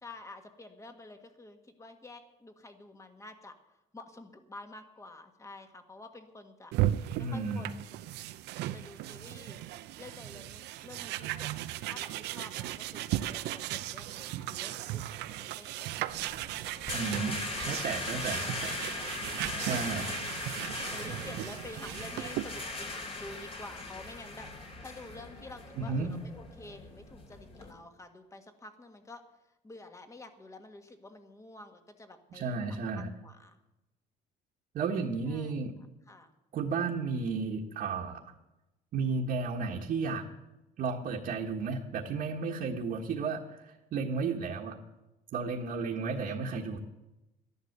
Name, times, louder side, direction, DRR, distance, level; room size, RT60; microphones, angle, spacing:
voice 1, 0.0-6.7 7.1-7.7 8.7-9.6 10.0-11.5 11.9-16.2 19.6-20.1 20.9-29.2 29.6-33.6 35.3-35.6 36.1-36.3 45.9-46.5, left 2 dB, 20° left, 6 dB, 1.7 m, -49 dB
sound 1, 6.7-22.6, right 14 dB, 85° right, 0.6 m, -36 dB
voice 2, 7.2-7.7 16.9-18.8 19.7-20.1 25.8-26.1 32.3-33.1 34.7-35.7 36.5-38.3 38.9-40.2 40.8-44.8 45.3-46.8, right 4 dB, 60° right, -1 dB, 1.5 m, -33 dB
sound 2, 16.1-27.7, left 3 dB, 35° left, 2.9 m, -39 dB
13.5 x 11.0 x 6.6 m, 0.98 s
cardioid pair, 110°, 17 cm